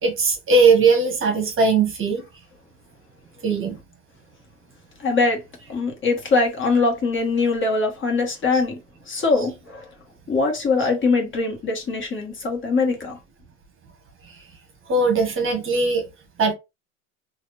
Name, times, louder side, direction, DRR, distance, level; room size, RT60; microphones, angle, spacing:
voice 1, 0.0-2.2 3.4-3.8 14.9-16.1 16.4-16.5, right 4 dB, 30° right, 1.6 m, -19 dB
voice 2, 5.0-5.4 5.7-8.8 9.1-9.9 10.3-13.2, left 3 dB, 25° left, 1.8 m, -22 dB
4.9 x 2.9 x 2.7 m
hypercardioid pair, 90°, 43 cm